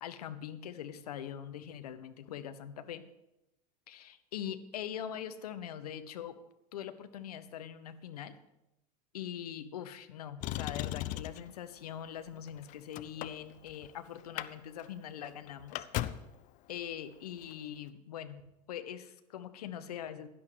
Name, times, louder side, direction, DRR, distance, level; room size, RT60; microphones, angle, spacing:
voice 1, 0.0-3.1 3.9-6.4 6.7-8.4 9.1-15.9 16.7-20.3, left 9 dB, 65° left, 10 dB, 0.9 m, -42 dB
Motor vehicle (road), 10.4-11.5 12.3-13.9 14.2-14.5 14.8-14.9 15.2-16.4 17.4-17.5, left 14 dB, 35° left, 0.5 m, -37 dB
16.5 x 11.0 x 3.1 m, 0.91 s
figure-of-eight pair, 75°, 21 cm